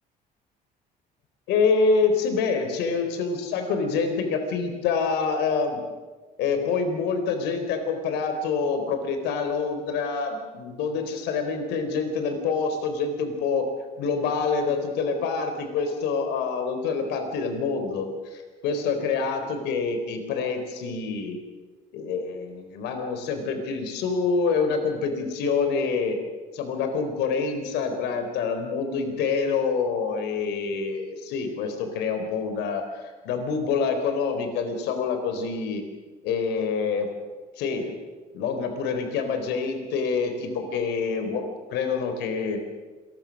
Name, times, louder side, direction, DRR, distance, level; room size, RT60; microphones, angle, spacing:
voice 1, 1.5-5.8 6.4-13.7 14.0-21.4 21.9-26.2 26.5-35.8 36.2-37.1 37.6-37.9 38.3-41.4 41.7-42.6, left 5 dB, 90° left, 6 dB, 3.9 m, -26 dB
27.0 x 21.0 x 6.5 m, 1.3 s
cardioid pair, 110°, 17 cm